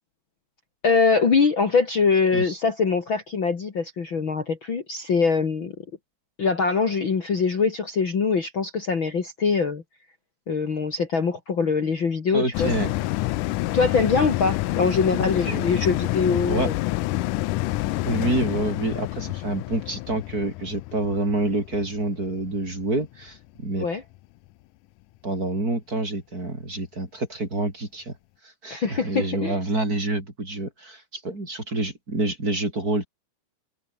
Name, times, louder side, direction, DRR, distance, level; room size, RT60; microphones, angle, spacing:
voice 1, 0.8-5.7 6.4-9.8 10.5-12.7 13.7-16.7 23.8-24.0 28.7-29.6, left 5 dB, 40° left, 2.9 m, -23 dB
voice 2, 12.3-12.9 15.1-15.7 16.5-16.7 18.0-23.9 25.2-28.1 28.6-33.1, right 2 dB, 25° right, 6.0 m, -27 dB
sound 1, 12.5-23.2 23.7-23.8, left 18 dB, 85° left, 2.2 m, -28 dB
omnidirectional pair, 3.7 m